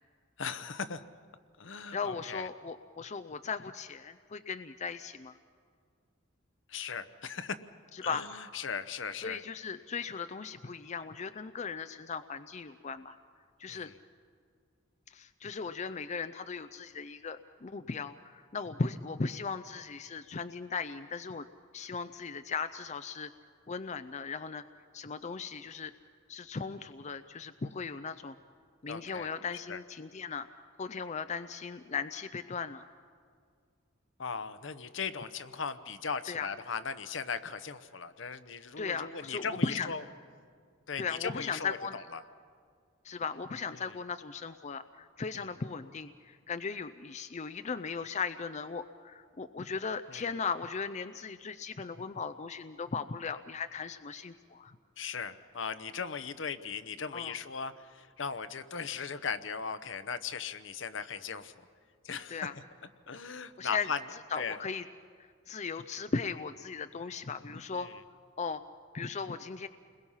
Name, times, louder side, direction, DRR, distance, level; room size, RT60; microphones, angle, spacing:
voice 1, 0.4-1.0 1.6-2.5 6.7-7.6 8.0-9.4 13.7-13.9 28.9-29.3 29.7-29.8 34.2-40.0 40.9-42.2 43.8-43.9 45.3-45.5 50.1-50.3 55.0-61.7 62.0-62.5 63.1-64.0 64.3-64.6 67.7-68.0, left 6 dB, 70° left, 11 dB, 0.9 m, -38 dB
voice 2, 1.9-5.4 7.9-8.3 9.2-13.2 13.6-13.9 15.1-21.5 21.7-23.3 23.7-24.6 24.9-25.9 26.3-28.3 28.8-30.5 30.8-32.8 36.3-36.5 38.8-39.9 41.0-42.0 43.0-54.8 57.1-57.4 62.3-62.5 63.6-63.9 64.3-64.8 65.5-67.9 68.4-68.6 68.9-69.7, left 5 dB, 35° left, 10 dB, 0.5 m, -37 dB
29.5 x 21.5 x 5.7 m, 2.2 s
head